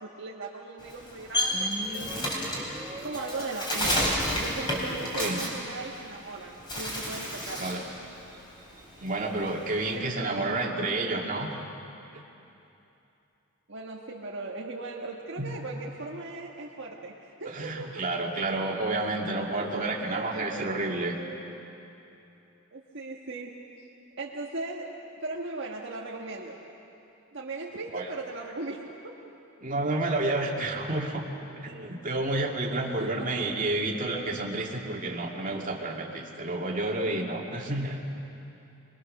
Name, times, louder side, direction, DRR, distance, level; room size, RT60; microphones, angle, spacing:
voice 1, 0.0-2.4 3.0-7.6 9.9-10.5 13.7-18.2 19.5-20.9 22.7-23.5 24.2-26.6 27.3-29.2 33.0-33.6, right 3 dB, 60° right, -2 dB, 1.5 m, -38 dB
Bird, 0.8-6.3 6.6-7.9 8.2-9.9, equal, 20° left, 4.0 m, -30 dB
sound 1, 1.2-5.5, right 1 dB, 10° right, 1.8 m, -41 dB
voice 2, 7.6-7.9 9.0-11.5 12.1-12.2 15.4-15.5 17.5-21.2 27.9-28.1 29.6-38.0, right 2 dB, 40° right, -1 dB, 2.2 m, -30 dB
23.5 x 21.5 x 6.6 m, 2.9 s
head